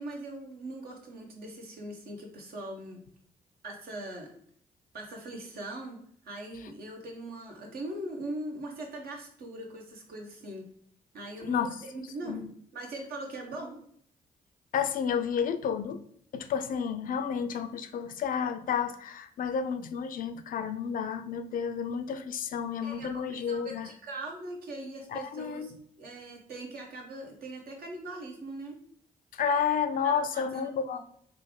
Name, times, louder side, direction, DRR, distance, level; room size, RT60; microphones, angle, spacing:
voice 1, 0.0-3.0 3.6-4.3 4.9-10.7 11.1-13.8 22.8-25.7 26.0-28.8 30.0-31.0, right 2 dB, 70° right, 1 dB, 0.9 m, -41 dB
voice 2, 14.7-16.0 16.3-23.9 25.1-25.7 29.4-31.0, left 7 dB, 60° left, 10 dB, 0.4 m, -31 dB
3.3 x 2.5 x 3.6 m, 0.64 s
supercardioid pair, 50°, 16 cm